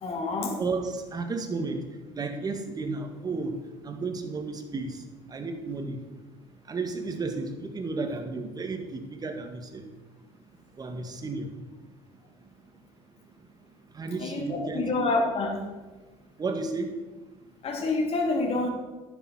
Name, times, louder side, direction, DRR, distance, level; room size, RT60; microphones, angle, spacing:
voice 1, 0.0-0.6 14.2-15.6 17.6-18.7, left 3 dB, 50° left, 2 dB, 2.7 m, -27 dB
voice 2, 0.6-1.8 2.1-3.5 3.8-5.0 5.3-6.0 6.7-9.8 10.8-11.5 14.0-14.9 16.4-16.9, right 3 dB, 30° right, 5 dB, 1.8 m, -32 dB
11.0 x 7.4 x 6.2 m, 1.2 s
supercardioid pair, 85°, 13 cm